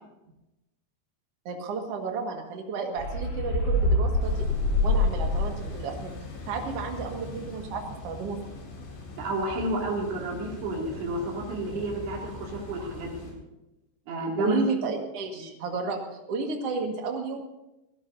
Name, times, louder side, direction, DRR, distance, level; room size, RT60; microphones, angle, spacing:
voice 1, 1.5-4.5 4.8-6.1 6.5-8.6 14.4-16.0 16.3-17.4, right 4 dB, 50° right, 2 dB, 2.0 m, -32 dB
sound 1, 3.0-5.8, left 2 dB, 55° left, 4.3 m, -25 dB
sound 2, 4.2-13.3, left 2 dB, 75° left, 6.1 m, -41 dB
voice 2, 9.2-13.3 14.1-14.6 15.3-15.4, right 1 dB, 70° right, -2 dB, 4.8 m, -31 dB
25.0 x 17.0 x 2.8 m, 0.97 s
omnidirectional pair, 5.3 m